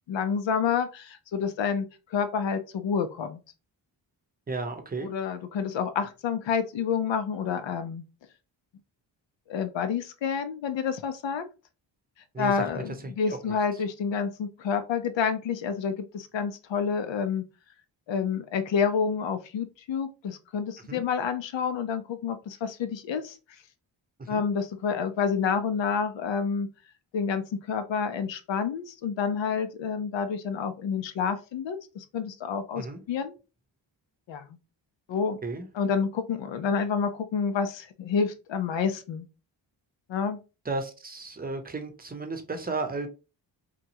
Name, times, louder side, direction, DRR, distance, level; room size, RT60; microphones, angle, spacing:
voice 1, 0.1-1.9 2.1-3.4 5.0-8.0 9.5-11.4 12.4-17.4 18.1-23.3 24.3-26.7 27.1-33.3 34.3-34.4 35.1-35.4 35.7-39.3 40.1-40.4, left 6 dB, 65° left, 0.6 m, -29 dB
voice 2, 4.5-5.1 12.3-13.5 20.9-21.0 24.2-24.4 32.8-33.0 35.4-35.7 40.6-43.1, right 3 dB, 20° right, 0.7 m, -34 dB
2.9 x 2.3 x 2.8 m
cardioid pair, 50°, 48 cm